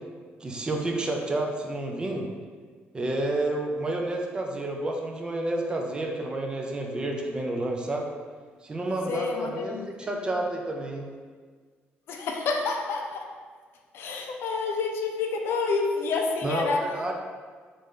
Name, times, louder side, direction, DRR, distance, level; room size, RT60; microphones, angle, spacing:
voice 1, 0.4-2.3 2.9-8.1 8.6-9.8 10.1-11.1 16.4-17.1, right 2 dB, 20° right, 1 dB, 0.4 m, -30 dB
voice 2, 9.1-10.2 12.1-13.3 13.9-16.8, left 4 dB, 70° left, 2 dB, 0.4 m, -29 dB
3.6 x 2.5 x 3.2 m, 1.6 s
cardioid pair, 135°, 4 cm